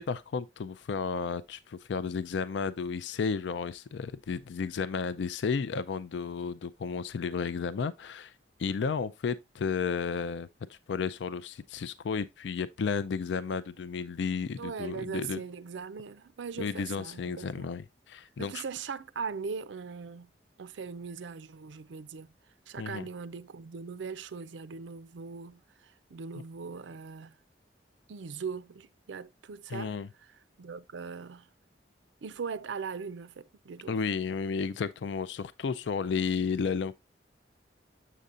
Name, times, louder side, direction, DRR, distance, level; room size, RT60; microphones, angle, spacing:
voice 1, 0.0-8.3 8.6-15.4 16.6-18.6 22.8-23.1 29.7-30.1 33.9-36.9, left 5 dB, 75° left, 0.4 m, -33 dB
voice 2, 14.6-17.7 18.4-20.3 20.6-22.3 22.7-27.4 28.1-30.3 30.6-31.5 32.2-34.0, right 5 dB, 90° right, 0.5 m, -40 dB
7.4 x 6.7 x 2.4 m
head